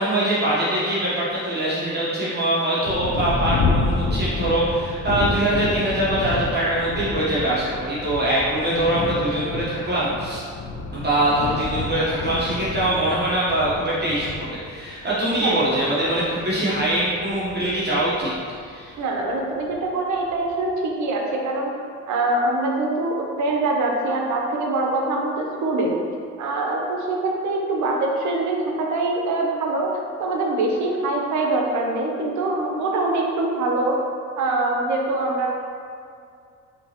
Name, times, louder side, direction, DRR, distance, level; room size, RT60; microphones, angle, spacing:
voice 1, 0.0-10.4 10.9-18.3 18.6-19.0, right 1 dB, 35° right, -9 dB, 0.9 m, -23 dB
Thunder, 2.8-18.9 19.7-19.8 20.3-20.7, left 3 dB, 60° left, 0.5 m, -30 dB
voice 2, 19.0-21.7 22.1-26.0 26.4-34.0 34.4-35.5, right 2 dB, 75° right, 0 dB, 0.7 m, -24 dB
4.5 x 2.9 x 2.8 m, 2.3 s
cardioid pair, 90°, 30 cm